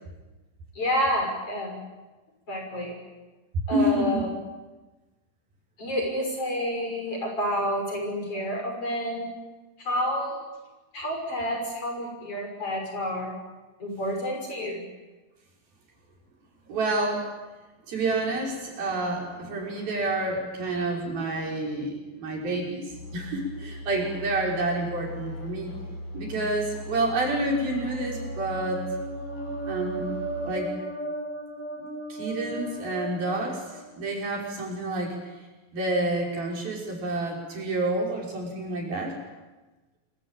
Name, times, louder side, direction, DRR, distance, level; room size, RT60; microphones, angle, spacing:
voice 1, 0.8-1.8 2.5-3.0 3.7-4.3 5.8-9.3 9.8-10.5 10.9-13.3 13.8-14.8, equal, 40° left, 2 dB, 7.1 m, -29 dB
voice 2, 3.7-4.3 16.7-17.3 17.9-25.7 26.1-28.8 29.7-30.1 30.4-30.7 31.8-33.6 34.0-35.2 35.7-39.2, right 2 dB, 75° right, -1 dB, 7.6 m, -29 dB
sound 1, 22.9-30.5, left 1 dB, 60° left, 7.5 m, -39 dB
sound 2, 27.6-34.2, right 2 dB, 5° left, 3.5 m, -36 dB
27.0 x 23.5 x 9.1 m, 1.2 s
omnidirectional pair, 4.2 m